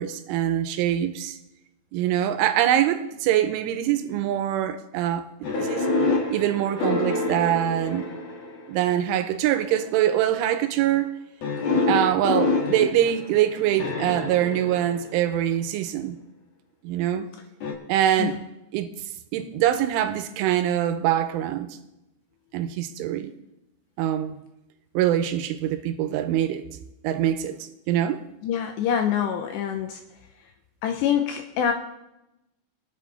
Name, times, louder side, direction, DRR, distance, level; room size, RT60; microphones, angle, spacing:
voice 1, 0.0-1.4 1.9-5.2 5.6-5.9 6.3-8.1 8.7-11.1 11.9-16.2 16.8-17.3 17.9-18.4 18.7-18.9 19.3-21.8 22.5-23.3 24.0-24.3 24.9-26.6 27.0-27.6 27.9-28.2, right 11 dB, 85° right, 3.2 m, -24 dB
sound 1, 5.4-8.8 9.5-10.0 11.4-15.5 17.6-17.7, left 3 dB, 60° left, 1.7 m, -27 dB
voice 2, 28.4-30.0 30.8-31.7, left 8 dB, 85° left, 2.6 m, -25 dB
23.0 x 7.8 x 4.1 m
omnidirectional pair, 5.7 m